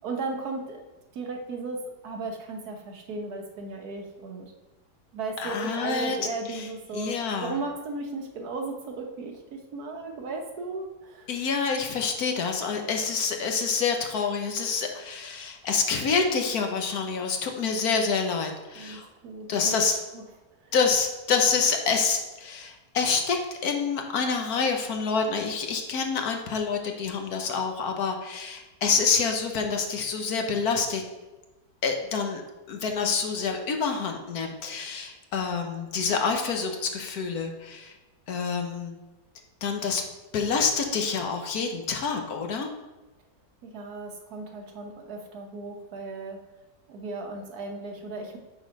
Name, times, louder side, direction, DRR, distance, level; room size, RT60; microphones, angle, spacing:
voice 1, 0.0-0.8 1.1-4.5 5.1-11.3 18.7-19.8 20.1-20.2 20.6-20.7 43.6-46.4 46.9-48.4, right 3 dB, 65° right, 2 dB, 1.4 m, -36 dB
voice 2, 5.4-6.2 6.5-6.7 6.9-7.5 11.3-19.1 19.5-20.0 20.7-31.0 31.8-32.4 32.7-37.9 38.3-38.9 39.6-40.0 40.3-42.7, left 5 dB, 65° left, 4 dB, 1.3 m, -27 dB
8.1 x 4.0 x 5.3 m, 1.1 s
omnidirectional pair, 1.8 m